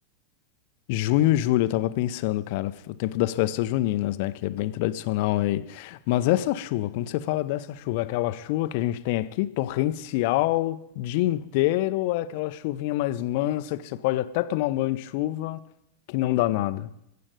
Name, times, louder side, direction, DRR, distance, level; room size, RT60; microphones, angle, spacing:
voice 1, 0.9-15.6 16.1-16.9, left 15 dB, 50° left, 0.8 m, -26 dB
16.0 x 7.6 x 8.4 m
figure-of-eight pair, 90°, 0 cm